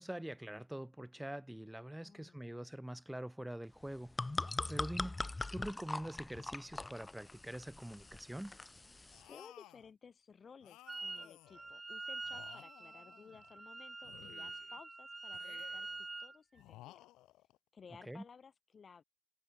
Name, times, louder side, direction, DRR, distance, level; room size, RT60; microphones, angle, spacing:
voice 1, 0.0-4.1 4.7-5.2 5.5-8.6 18.1-18.2, right 1 dB, 5° right, 5.5 m, -44 dB
voice 2, 2.0-2.6 4.8-5.0 9.3-17.1 17.7-19.0, left 6 dB, 50° left, 4.2 m, -58 dB
sound 1, 3.8-9.3, left 2 dB, 25° left, 0.9 m, -42 dB
sound 2, 9.1-9.9 10.6-11.7 12.2-13.6 14.0-14.8 15.3-16.0 16.5-17.6, left 16 dB, 75° left, 4.9 m, -58 dB
Wind instrument woodwind instrument, 10.9-11.3 11.5-16.4, right 2 dB, 25° right, 4.4 m, -46 dB
hypercardioid pair, 45°, 0 cm